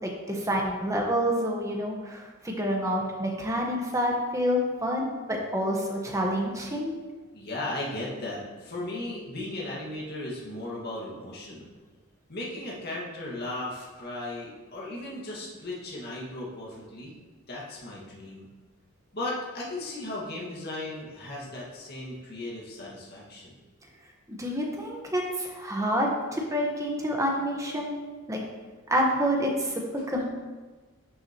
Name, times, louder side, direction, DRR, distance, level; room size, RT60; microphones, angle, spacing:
voice 1, 0.0-6.9 24.3-27.9 28.3-28.4 28.9-29.8 30.1-30.3, equal, 15° right, 0 dB, 1.1 m, -28 dB
voice 2, 7.3-11.7 12.3-17.1 17.5-18.5 19.1-23.6, left 2 dB, 50° left, -5 dB, 1.7 m, -36 dB
11.5 x 6.1 x 2.9 m, 1.3 s
head